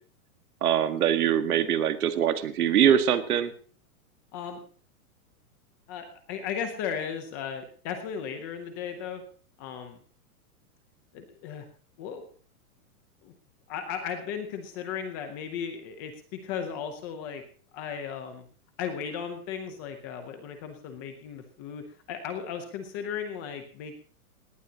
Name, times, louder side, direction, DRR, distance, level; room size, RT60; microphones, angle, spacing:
voice 1, 0.6-3.5, right 9 dB, 75° right, 9 dB, 1.8 m, -23 dB
voice 2, 4.3-4.6 5.9-9.2 9.6-10.0 11.1-11.6 12.0-12.3 13.2-13.3 13.7-17.4 17.7-18.5 18.8-24.0, left 7 dB, 15° left, 7 dB, 0.7 m, -36 dB
19.0 x 18.0 x 2.9 m, 0.43 s
supercardioid pair, 175°, 44 cm